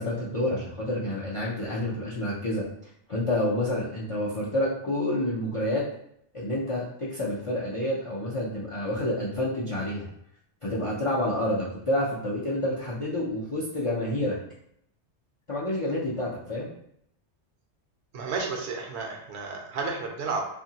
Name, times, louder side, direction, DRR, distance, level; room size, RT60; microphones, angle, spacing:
voice 1, 0.0-2.7 3.1-5.8 6.3-10.1 10.6-14.4 15.5-16.7, left 1 dB, 55° left, -6 dB, 0.3 m, -28 dB
voice 2, 18.1-20.5, right 4 dB, 75° right, 1 dB, 0.9 m, -32 dB
2.7 x 2.5 x 2.7 m, 0.73 s
omnidirectional pair, 1.2 m